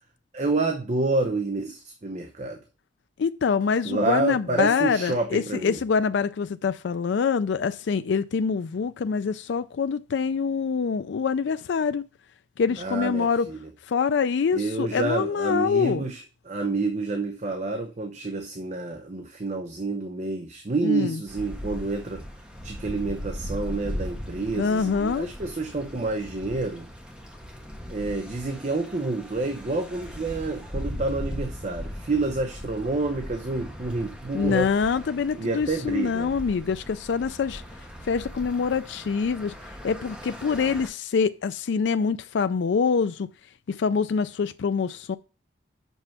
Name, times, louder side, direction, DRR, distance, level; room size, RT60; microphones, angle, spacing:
voice 1, 0.3-2.6 3.8-5.8 12.8-13.7 14.5-22.2 22.6-26.9 27.9-34.7 35.3-36.3, right 3 dB, 40° right, 0.7 m, -28 dB
voice 2, 3.2-12.0 12.6-13.5 13.9-16.0 20.8-21.2 24.5-25.3 34.3-37.6 38.1-39.5 39.8-43.3 43.7-45.2, left 5 dB, 75° left, 0.4 m, -25 dB
sound 1, 21.3-40.9, equal, 5° right, 1.4 m, -38 dB
6.0 x 5.5 x 5.7 m
head